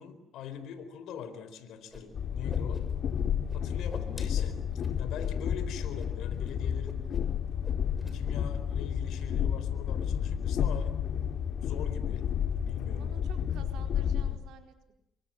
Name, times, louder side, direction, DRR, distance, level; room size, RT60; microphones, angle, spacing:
voice 1, 0.0-2.8 3.5-4.6 5.0-7.0 8.1-11.0 11.6-12.3 12.6-13.2, left 7 dB, 85° left, 10 dB, 4.1 m, -42 dB
Whoosh swoosh swish, 1.9-2.0 2.3-3.2 3.5-5.4 5.8-6.1 6.3-6.5 6.8-7.4 7.6-8.2, left 2 dB, 20° left, 6.8 m, -47 dB
Train, 2.1-14.4, left 8 dB, 70° left, 2.6 m, -31 dB
voice 2, 13.0-14.9, right 8 dB, 85° right, 6 dB, 4.4 m, -51 dB
27.5 x 24.0 x 9.0 m, 0.79 s
cardioid pair, 90°, 0 cm